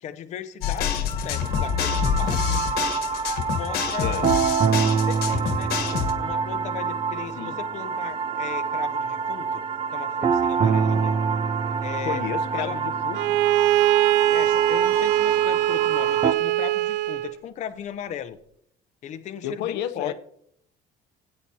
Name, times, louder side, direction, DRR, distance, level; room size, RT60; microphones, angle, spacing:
voice 1, 0.0-2.6 3.5-4.3 4.8-9.6 9.9-11.2 11.8-12.2 12.5-12.8 14.3-18.4 19.0-20.1, left 9 dB, 45° left, 0.6 m, -37 dB
sound 1, 0.6-6.1, left 7 dB, 65° left, 1.3 m, -26 dB
sound 2, 1.3-16.3, right 6 dB, 30° right, 0.5 m, -26 dB
voice 2, 4.0-4.3 7.4-7.6 12.0-13.4 19.4-20.1, left 10 dB, 80° left, 0.7 m, -31 dB
Bowed string instrument, 13.1-17.4, right 14 dB, 85° right, 0.4 m, -21 dB
18.5 x 8.7 x 2.8 m
cardioid pair, 145°, 17 cm